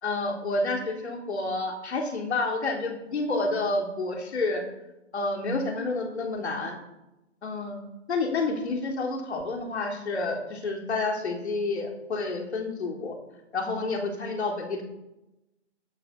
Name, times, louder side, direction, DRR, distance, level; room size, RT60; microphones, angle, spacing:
voice 1, 0.0-4.6 5.1-6.8 7.4-7.8 8.1-13.2 13.5-14.8, left 3 dB, 65° left, 2 dB, 3.6 m, -29 dB
13.0 x 9.1 x 5.4 m, 0.92 s
hypercardioid pair, 160°, 36 cm